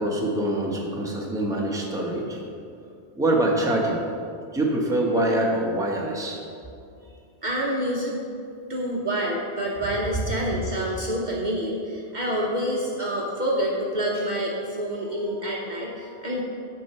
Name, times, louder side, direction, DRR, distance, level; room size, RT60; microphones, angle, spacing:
voice 1, 0.0-2.4 3.1-4.1 4.5-6.4, right 1 dB, 5° right, -2 dB, 0.9 m, -24 dB
voice 2, 7.4-8.2 8.7-16.4, equal, 45° right, -2 dB, 0.9 m, -27 dB
9.0 x 4.6 x 5.5 m, 2.4 s
omnidirectional pair, 1.2 m